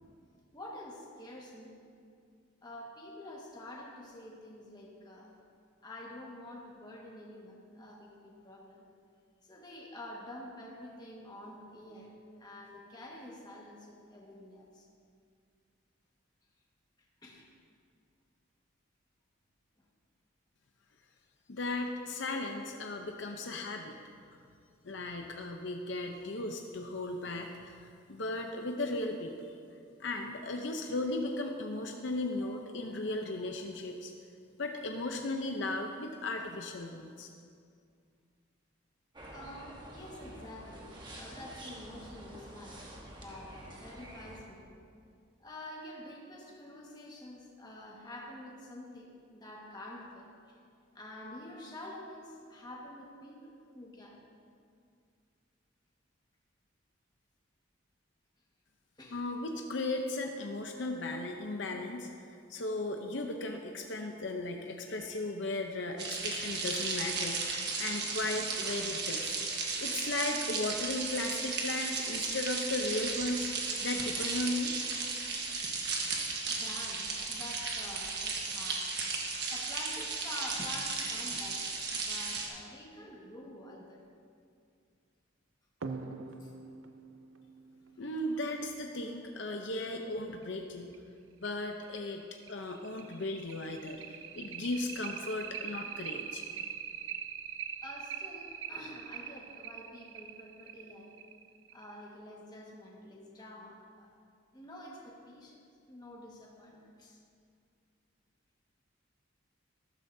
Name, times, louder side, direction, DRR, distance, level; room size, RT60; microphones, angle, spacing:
voice 1, 0.5-1.8 2.6-5.3 5.8-8.9 9.5-14.9 17.2-17.5 32.4-32.6 39.3-44.7 45.4-50.3 50.9-54.2 59.0-59.2 76.5-78.9 79.5-84.0 86.4-86.5 97.8-101.1 101.7-104.1 104.5-105.6 105.9-107.2, left 1 dB, 20° left, -2 dB, 1.5 m, -48 dB
voice 2, 21.5-24.0 24.8-29.5 29.9-34.1 34.6-37.3 59.1-69.4 69.8-74.7 88.0-90.9 91.4-92.2 92.5-96.4, left 2 dB, 65° left, 3 dB, 0.7 m, -36 dB
sound 1, 39.1-44.4, right 1 dB, 25° right, 1.3 m, -48 dB
sound 2, 66.0-82.5, right 4 dB, 55° right, 1.4 m, -35 dB
sound 3, 85.8-89.0 90.4-90.5 90.9-91.0 91.4-91.5 92.0-102.0, right 7 dB, 80° right, 0.6 m, -43 dB
14.0 x 12.5 x 2.7 m, 2.3 s
head